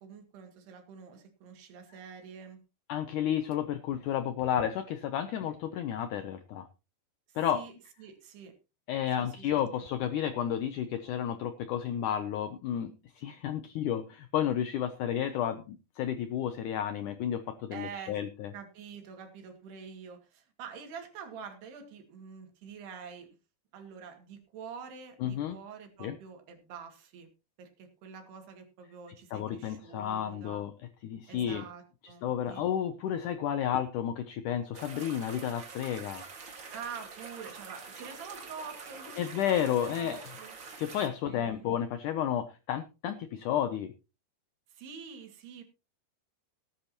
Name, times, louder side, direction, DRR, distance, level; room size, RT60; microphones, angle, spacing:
voice 1, 0.0-2.6 7.3-7.7 8.0-8.5 9.2-9.5 9.7-9.8 17.7-18.2 18.5-23.3 23.7-27.3 27.6-30.6 31.3-32.6 36.7-40.5 41.3-41.7 44.7-45.6, right 6 dB, 80° right, 5 dB, 4.2 m, -46 dB
voice 2, 2.9-6.7 7.4-7.6 8.9-18.5 25.2-25.6 26.0-26.2 29.3-30.7 31.0-31.6 32.2-36.2 39.2-40.3 40.8-43.9, left 10 dB, 90° left, 10 dB, 1.8 m, -32 dB
sound 1, 34.7-41.1, right 5 dB, 40° right, 2.0 m, -46 dB
18.5 x 10.0 x 2.9 m, 0.31 s
omnidirectional pair, 4.6 m